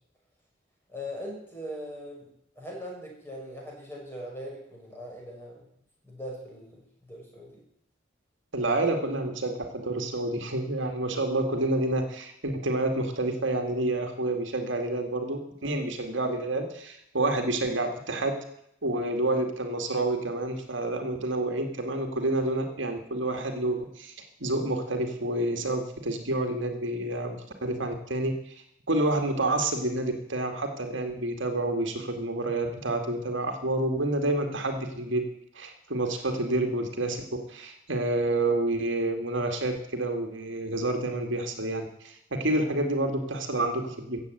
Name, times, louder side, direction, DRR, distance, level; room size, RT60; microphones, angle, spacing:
voice 1, 0.9-2.3 2.5-5.7 6.0-7.6, equal, 10° left, -3 dB, 6.4 m, -40 dB
voice 2, 8.5-18.4 18.8-24.1 24.4-28.6 28.9-35.2 35.5-44.2, right 2 dB, 70° right, 5 dB, 2.2 m, -29 dB
15.0 x 8.3 x 9.2 m, 0.74 s
head